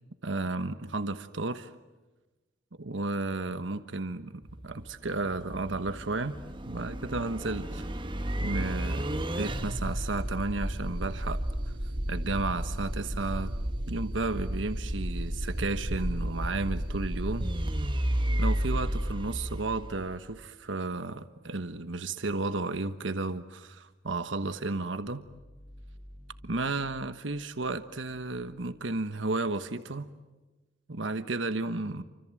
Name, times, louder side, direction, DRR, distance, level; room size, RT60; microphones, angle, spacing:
voice 1, 0.2-1.7 2.8-6.4 6.7-7.9 8.4-11.4 12.1-13.5 13.9-17.5 18.4-25.2 26.4-30.1 30.9-32.0, right 3 dB, 75° right, 10 dB, 1.3 m, -33 dB
sound 1, 4.4-20.4, right 1 dB, 25° right, 1.4 m, -32 dB
sound 2, 24.9-29.4, equal, 40° left, 5.5 m, -53 dB
29.0 x 26.0 x 7.7 m, 1.2 s
head